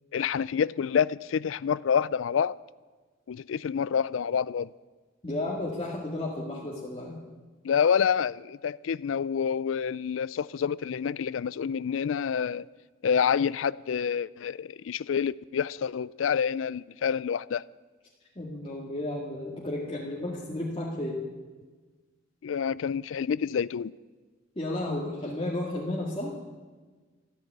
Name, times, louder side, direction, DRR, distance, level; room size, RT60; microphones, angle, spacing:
voice 1, 0.1-2.6 3.3-4.7 7.6-12.7 13.0-17.6 22.4-23.9, left 7 dB, 80° left, 0.4 m, -27 dB
voice 2, 5.2-7.2 18.4-21.2 24.6-26.3, left 1 dB, 30° left, 2.0 m, -33 dB
14.0 x 12.5 x 8.1 m
head